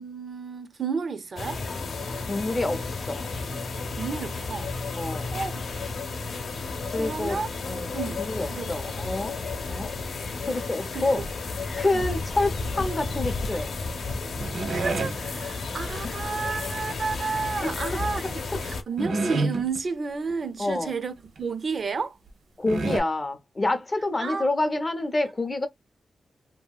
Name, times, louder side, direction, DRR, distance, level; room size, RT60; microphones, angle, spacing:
voice 1, 0.0-1.6 4.0-4.8 5.3-5.6 7.0-7.5 7.9-8.2 8.5-9.0 10.9-11.2 11.9-12.1 14.7-22.2 24.1-24.5, right 5 dB, 50° right, 0.4 m, -32 dB
sound 1, 1.4-18.8, left 4 dB, 80° left, 0.6 m, -32 dB
voice 2, 2.2-3.3 5.0-5.4 6.9-7.4 7.7-9.4 9.7-9.9 10.5-11.2 11.8-13.7 16.0-16.1 17.6-17.7 20.6-20.9 22.6-25.7, left 2 dB, 25° left, 0.5 m, -28 dB
sound 2, 14.4-15.2 17.6-18.0 18.5-18.6 19.0-19.8 20.3-20.4 20.6-20.8 21.4-21.5 22.3-22.4 22.7-23.0, right 2 dB, 90° right, 0.8 m, -28 dB
2.9 x 2.6 x 2.2 m
wide cardioid pair, 150°, 0 cm